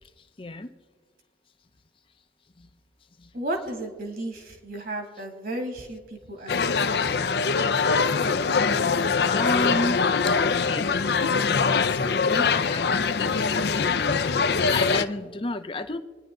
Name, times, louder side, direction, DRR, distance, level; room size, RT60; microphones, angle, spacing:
voice 1, 0.0-0.7 2.6-2.7 3.2-3.3 6.5-6.6 8.1-8.2 8.5-8.9 9.2-11.1 11.9-16.0, left 2 dB, 30° left, 9 dB, 0.6 m, -33 dB
voice 2, 3.3-6.9, right 1 dB, 55° right, 3 dB, 2.4 m, -34 dB
sound 1, 6.5-15.0, left 5 dB, 70° left, 0.6 m, -23 dB
27.5 x 10.5 x 3.8 m, 1.5 s
head